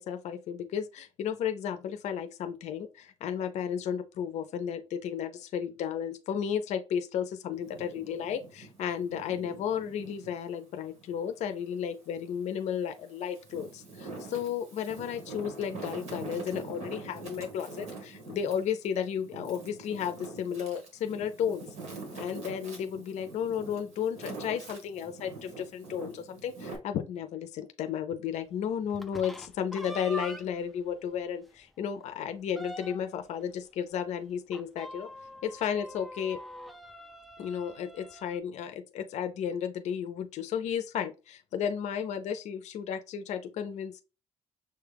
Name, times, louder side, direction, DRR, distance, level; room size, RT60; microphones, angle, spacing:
voice 1, 0.0-21.7 22.1-35.1 35.4-36.4 37.4-44.0, left 8 dB, 75° left, 0.5 m, -33 dB
Wind, 7.5-10.4 10.9-12.2 12.8-26.8, right 3 dB, 65° right, 1.6 m, -45 dB
sound 1, 28.9-30.7 31.1-31.2 31.6-31.7 32.0-33.2 34.5-38.4, equal, ahead, 0.3 m, -44 dB
6.6 x 2.3 x 3.3 m
cardioid pair, 145°, 12 cm